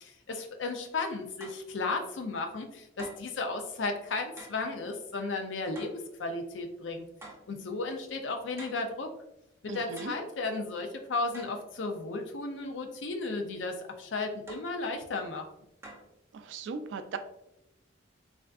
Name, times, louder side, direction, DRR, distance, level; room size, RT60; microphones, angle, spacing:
voice 1, 0.0-5.9 6.2-7.0 7.5-9.1 9.6-15.5, left 3 dB, 80° left, 4 dB, 0.5 m, -34 dB
sound 1, 1.4-1.7 3.0-3.4 4.4-4.6 5.8-6.1 7.2-7.5 8.6-8.9 10.0-10.3 11.3-11.6 14.5-14.8 15.8-16.2, right 2 dB, 15° right, 0.6 m, -47 dB
voice 2, 9.7-10.1 16.3-17.2, right 4 dB, 80° right, 9 dB, 0.3 m, -38 dB
3.4 x 2.5 x 2.3 m, 0.83 s
head